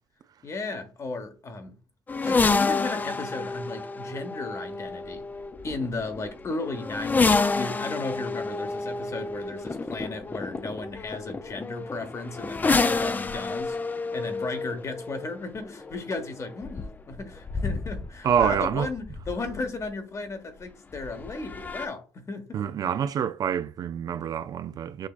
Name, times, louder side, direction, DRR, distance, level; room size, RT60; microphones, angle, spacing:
voice 1, 0.4-1.8 2.2-5.2 5.6-22.6, left 3 dB, 40° left, 1.1 m, -35 dB
sound 1, 2.1-19.8 20.9-21.9, left 3 dB, 20° left, 0.4 m, -29 dB
voice 2, 18.2-18.9 22.5-25.1, right 8 dB, 50° right, 0.3 m, -26 dB
6.2 x 2.7 x 2.4 m
supercardioid pair, 70°, 8 cm